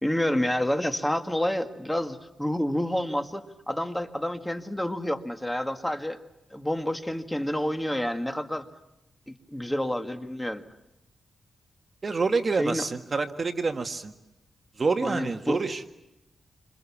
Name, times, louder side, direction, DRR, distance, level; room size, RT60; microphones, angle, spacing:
voice 1, 0.0-6.2 6.5-8.7 9.5-10.6 12.6-12.9 15.0-15.7, left 1 dB, 5° left, 7 dB, 2.0 m, -29 dB
voice 2, 12.0-14.1 14.8-15.8, right 4 dB, 40° right, 7 dB, 1.7 m, -27 dB
29.0 x 26.5 x 7.3 m, 0.92 s
wide cardioid pair, 110°, 0 cm